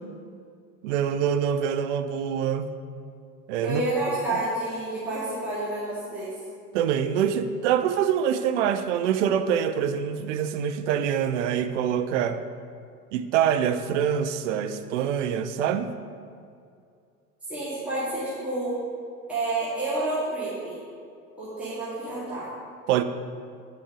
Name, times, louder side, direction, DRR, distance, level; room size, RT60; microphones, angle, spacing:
voice 1, 0.8-2.7 3.5-3.8 6.7-12.4 13.1-15.9 22.9-23.0, right 8 dB, 50° right, 9 dB, 0.7 m, -25 dB
voice 2, 3.6-6.3 17.5-18.7 19.3-20.8 21.4-22.5, right 2 dB, 5° right, -11 dB, 2.2 m, -29 dB
9.6 x 5.4 x 4.9 m, 2.4 s
figure-of-eight pair, 80°, 46 cm